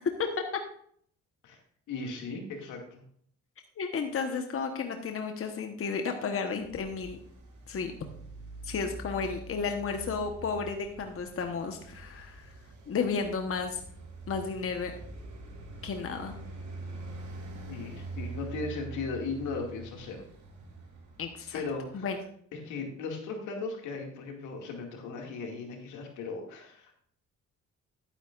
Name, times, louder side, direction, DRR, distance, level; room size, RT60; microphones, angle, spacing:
voice 1, 1.9-3.0 17.7-20.2 21.5-22.1 22.5-26.9, left 4 dB, 90° left, 1 dB, 2.3 m, -37 dB
voice 2, 3.8-7.2 7.7-8.0 8.6-12.5 12.9-13.8 14.3-14.9 15.8-16.3 21.2-21.6 21.9-22.2, left 5 dB, 45° left, 5 dB, 1.2 m, -33 dB
Traffic noise roadway noise, 6.6-22.0, right 2 dB, 75° right, 4.6 m, -45 dB
11.5 x 9.9 x 2.5 m, 0.63 s
cardioid pair, 90°, 30 cm